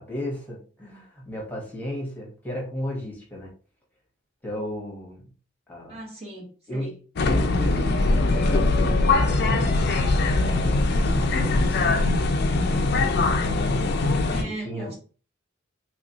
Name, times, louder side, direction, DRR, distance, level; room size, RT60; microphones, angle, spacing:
voice 1, 0.0-3.5 4.4-5.3 5.7-6.0 6.7-7.0 7.2-9.7 10.3-14.0 14.4-15.0, equal, 10° left, -3 dB, 0.9 m, -35 dB
voice 2, 5.9-6.9 14.3-15.0, right 1 dB, 30° right, -2 dB, 0.9 m, -37 dB
sound 1, 7.2-14.4, left 2 dB, 50° left, 0.4 m, -22 dB
3.2 x 2.8 x 2.7 m, 0.38 s
head